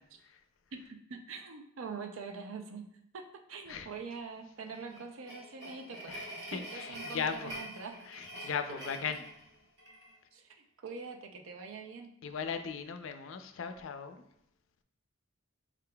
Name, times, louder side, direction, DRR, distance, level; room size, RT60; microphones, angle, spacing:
voice 1, 0.7-2.9 3.1-6.2 6.5-7.9 8.4-8.5 9.0-9.1 10.3-10.5 10.8-12.1, right 5 dB, 85° right, 5 dB, 0.5 m, -44 dB
sound 1, 4.6-10.1, equal, 60° right, 1.3 m, -46 dB
voice 2, 6.1-7.6 8.1-9.2 12.2-14.2, left 6 dB, 75° left, 8 dB, 0.4 m, -38 dB
4.6 x 3.7 x 2.2 m, 0.74 s
head